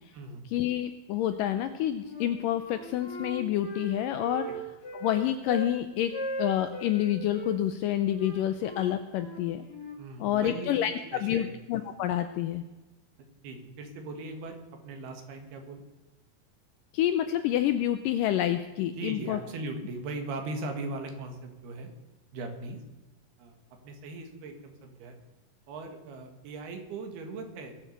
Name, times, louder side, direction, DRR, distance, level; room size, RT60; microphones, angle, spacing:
voice 1, 0.5-4.5 4.9-6.1 6.4-9.6 10.2-10.9 11.2-12.6 16.9-19.4, left 12 dB, 80° left, 9 dB, 2.0 m, -28 dB
Wind instrument woodwind instrument, 1.5-2.3 2.6-5.7 6.1-7.6 8.1-10.6, right 1 dB, 35° left, 1.7 m, -39 dB
voice 2, 10.0-11.5 13.4-14.6 14.8-15.8 19.0-21.9 22.3-22.8 23.4-23.6 23.8-25.2 25.7-27.7, right 2 dB, 80° right, 5 dB, 3.8 m, -39 dB
21.5 x 7.5 x 6.6 m, 1.1 s
omnidirectional pair, 4.5 m